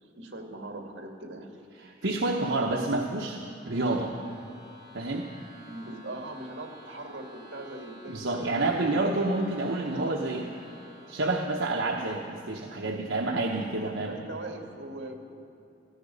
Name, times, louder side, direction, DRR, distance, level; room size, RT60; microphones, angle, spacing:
voice 1, 0.2-1.6 5.6-9.5 9.8-10.1 11.0-11.1 13.7-15.2, right 1 dB, 70° right, 2 dB, 2.2 m, -41 dB
voice 2, 1.8-3.4 3.7-4.1 4.9-5.3 8.1-10.5 11.1-14.1, right 2 dB, 85° right, 0 dB, 1.0 m, -28 dB
sound 1, 2.8-12.5, left 1 dB, 5° right, 4.2 m, -53 dB
15.5 x 14.5 x 5.4 m, 2.7 s
head